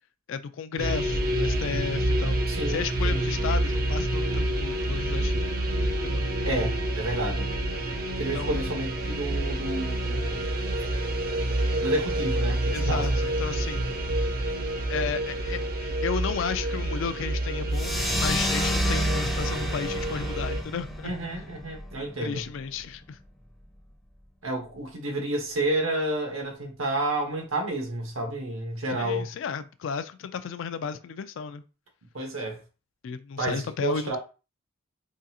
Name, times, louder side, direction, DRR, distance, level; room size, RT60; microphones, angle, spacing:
voice 1, 0.3-5.5 6.0-6.2 8.3-8.7 12.7-13.9 14.9-21.1 22.2-23.2 29.0-31.6 33.0-34.2, left 6 dB, 65° left, 0.3 m, -33 dB
sound 1, 0.8-20.6, right 1 dB, 50° right, 0.6 m, -28 dB
voice 2, 2.5-3.2 6.4-7.5 8.2-10.4 11.8-13.2 21.0-22.4 24.4-29.3 32.1-32.6 33.4-34.2, right 1 dB, 80° right, 1.0 m, -30 dB
sound 2, 17.7-22.8, left 1 dB, ahead, 0.5 m, -31 dB
3.7 x 2.3 x 2.7 m
head